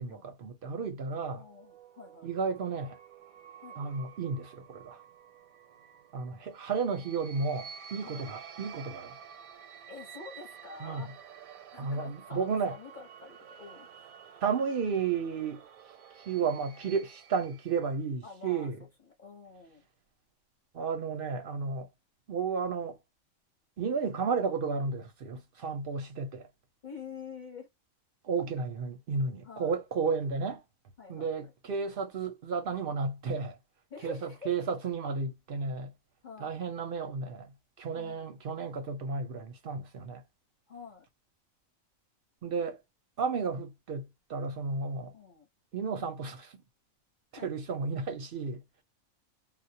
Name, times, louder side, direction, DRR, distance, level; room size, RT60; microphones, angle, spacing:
voice 1, 0.0-1.4 2.2-3.0 3.8-5.0 6.1-9.2 10.8-11.1 11.8-12.8 14.4-15.6 16.2-18.8 20.7-21.9 22.3-23.0 23.8-26.5 28.2-30.6 31.1-33.6 34.0-35.9 36.4-40.2 42.4-42.8 43.2-45.1 45.7-46.6 47.3-48.6, right 5 dB, 55° right, 0.6 m, -33 dB
sound 1, 1.1-17.9, right 7 dB, 85° right, 1.0 m, -51 dB
voice 2, 1.3-2.3 3.6-3.8 8.0-8.3 9.9-11.1 11.7-14.2 18.2-18.7 19.1-19.9 26.8-27.7 29.4-29.7 31.0-31.5 33.9-34.5 36.2-36.6 38.0-38.3 40.7-41.1 45.1-45.5 47.4-47.5, left 5 dB, 45° left, 0.7 m, -47 dB
2.3 x 2.0 x 2.6 m
omnidirectional pair, 1.4 m